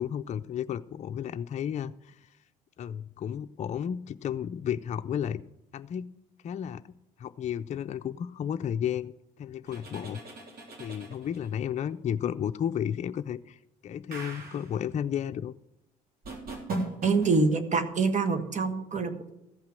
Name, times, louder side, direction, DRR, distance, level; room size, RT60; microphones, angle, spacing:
voice 1, 0.0-2.2 2.8-5.4 5.7-6.1 6.4-6.8 7.2-10.2 10.8-15.5, left 9 dB, 40° left, 9 dB, 0.5 m, -33 dB
sound 1, 9.7-11.6 14.1-14.8 16.2-17.4, right 2 dB, 55° right, 3.6 m, -38 dB
voice 2, 17.0-19.3, right 4 dB, 40° right, 8 dB, 1.6 m, -26 dB
14.5 x 5.8 x 7.6 m, 0.91 s
supercardioid pair, 65°, 18 cm